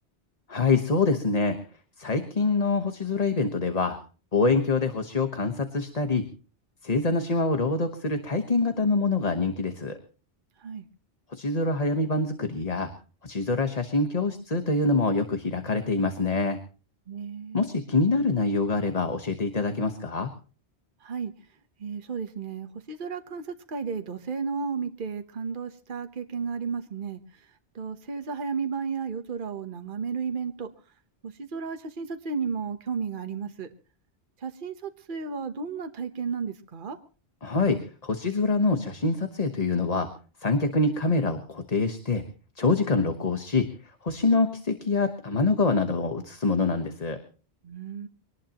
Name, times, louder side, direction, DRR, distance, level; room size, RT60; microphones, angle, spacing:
voice 1, 0.5-1.6 2.0-4.0 4.3-6.2 6.8-10.0 11.3-12.9 13.2-16.6 17.5-20.3 37.4-40.1 40.4-42.2 42.6-43.7 44.0-47.2, left 3 dB, 35° left, 7 dB, 1.3 m, -25 dB
voice 2, 17.1-17.6 21.0-21.3 21.8-30.7 31.2-33.7 34.4-37.0 47.6-48.1, right 5 dB, 50° right, 6 dB, 1.2 m, -33 dB
24.0 x 19.0 x 3.0 m, 0.38 s
omnidirectional pair, 1.1 m